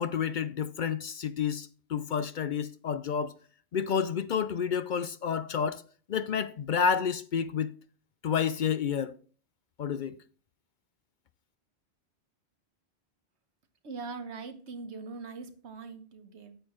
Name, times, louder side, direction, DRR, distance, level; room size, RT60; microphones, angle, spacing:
voice 1, 0.0-3.3 3.7-5.8 6.1-7.7 8.2-9.2 9.8-10.2, left 7 dB, 60° left, 0.6 m, -30 dB
voice 2, 13.8-16.6, right 4 dB, 85° right, 1.4 m, -41 dB
9.1 x 8.4 x 3.1 m
omnidirectional pair, 1.1 m